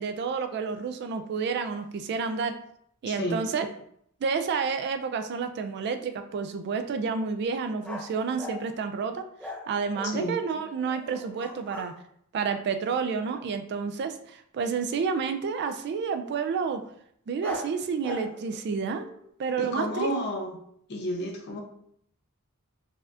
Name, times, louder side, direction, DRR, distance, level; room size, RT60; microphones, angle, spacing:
voice 1, 0.0-2.5 3.0-3.7 4.2-9.2 9.7-11.9 12.3-16.8 17.3-19.0 19.4-20.1, right 5 dB, 50° right, 8 dB, 0.3 m, -30 dB
voice 2, 3.1-3.4 10.0-10.4 19.6-20.6 20.9-21.6, equal, 50° left, 3 dB, 0.7 m, -31 dB
sound 1, 7.8-8.7 9.4-11.9 17.4-19.3, left 1 dB, 5° left, 0.6 m, -40 dB
4.1 x 2.6 x 2.4 m, 0.68 s
head